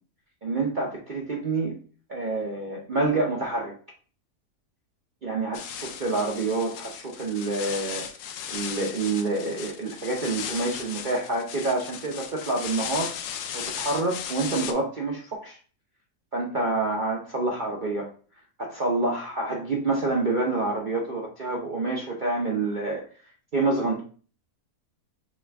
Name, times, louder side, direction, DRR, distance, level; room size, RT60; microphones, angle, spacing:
voice 1, 0.4-1.8 2.1-3.7 5.2-8.1 8.5-13.1 13.5-15.6 16.3-18.1 18.6-23.0 23.5-24.0, right 3 dB, 45° right, -2 dB, 0.6 m, -27 dB
sound 1, 5.5-14.7, left 8 dB, 75° left, 1.1 m, -36 dB
5.0 x 3.0 x 3.4 m, 0.40 s
omnidirectional pair, 1.7 m